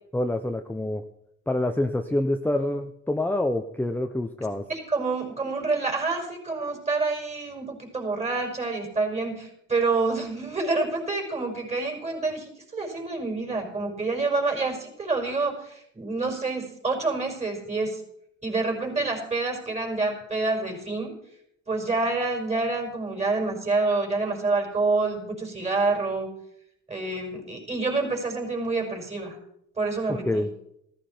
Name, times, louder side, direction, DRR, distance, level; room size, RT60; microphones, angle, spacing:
voice 1, 0.1-1.0 1.5-4.6 30.1-30.5, left 1 dB, 5° left, 5 dB, 0.8 m, -26 dB
voice 2, 4.7-18.0 18.4-21.2 21.7-26.3 26.9-29.4 29.8-30.5, right 3 dB, 20° right, 1 dB, 5.2 m, -27 dB
15.0 x 14.5 x 4.5 m, 0.74 s
cardioid pair, 105°, 30 cm